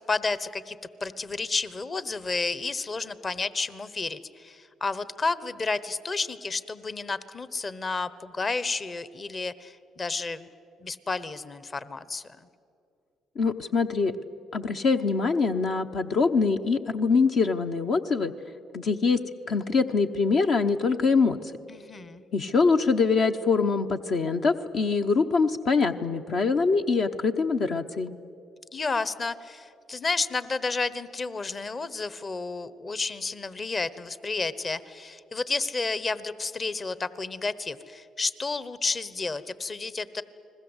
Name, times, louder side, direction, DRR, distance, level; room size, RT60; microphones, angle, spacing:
voice 1, 0.1-10.5 10.8-12.2 21.7-22.2 28.7-40.2, left 3 dB, 35° left, 15 dB, 1.1 m, -31 dB
voice 2, 13.4-14.1 14.5-18.3 18.7-19.2 19.5-21.5 22.3-28.1, left 4 dB, 60° left, 5 dB, 1.0 m, -24 dB
30.0 x 21.0 x 8.1 m, 2.6 s
supercardioid pair, 70°, 0 cm